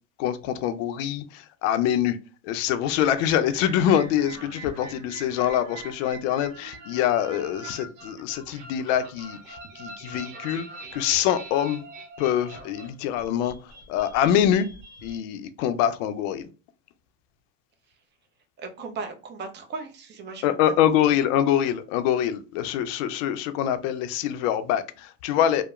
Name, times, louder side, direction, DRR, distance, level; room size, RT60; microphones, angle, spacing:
voice 1, 0.2-2.2 2.4-10.7 10.9-11.9 12.2-13.5 13.9-14.7 15.0-16.5 20.4-25.6, left 10 dB, 70° left, 0.5 m, -24 dB
sound 1, 2.8-15.2, right 2 dB, 85° right, 0.7 m, -43 dB
voice 2, 18.6-20.8, right 4 dB, 30° right, 0.5 m, -37 dB
2.8 x 2.0 x 2.3 m
supercardioid pair, 110°, 38 cm